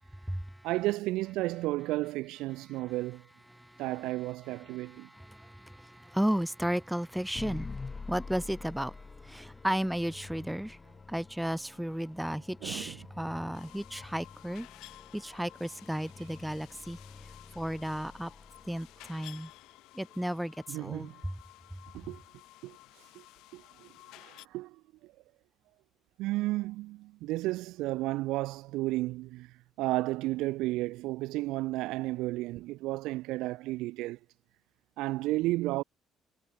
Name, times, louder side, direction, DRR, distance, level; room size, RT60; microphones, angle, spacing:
voice 1, 0.6-3.3 3.8-5.1 12.6-13.0 20.7-21.2 21.9-22.2 22.6-22.8 23.1-23.2 23.5-23.9 24.2-25.1 26.2-34.2 35.0-35.8, right 19 dB, 90° right, 1.0 m, -33 dB
voice 2, 4.7-10.8 11.1-14.7 15.1-17.0 17.6-18.3 18.7-19.5 19.9-21.3, equal, 5° right, 0.7 m, -34 dB
sound 1, 7.3-19.5, left 4 dB, 25° left, 7.9 m, -47 dB
sound 2, 13.5-24.5, left 18 dB, 85° left, 5.2 m, -54 dB
cardioid pair, 90°, 0 cm